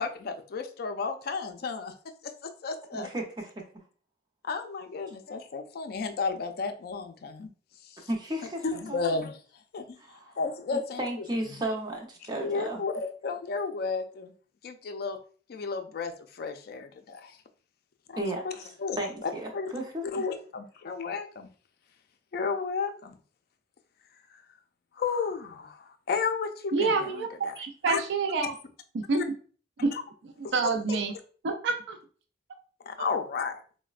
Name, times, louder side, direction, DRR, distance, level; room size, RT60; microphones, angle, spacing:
voice 1, 0.0-1.9 2.2-3.1 4.4-7.5 7.8-8.1 8.6-9.4 9.7-11.0 12.4-14.3 14.6-15.2 15.5-17.4 18.1-18.5 18.8-19.7 20.0-21.5 22.3-23.2 24.9-27.5 27.9-28.0 29.9-30.0 30.4-31.0 32.8-33.6, left 4 dB, 55° left, 7 dB, 0.4 m, -33 dB
voice 2, 2.9-3.5 8.1-9.0 10.0-10.4 10.7-12.8 18.2-18.4 19.0-20.0, right 1 dB, 25° right, 1 dB, 0.6 m, -34 dB
voice 3, 26.7-28.5 28.9-29.3 29.8-29.9 30.4-31.1 31.4-32.0, right 4 dB, 70° right, 5 dB, 0.4 m, -27 dB
4.0 x 2.1 x 2.3 m, 0.42 s
head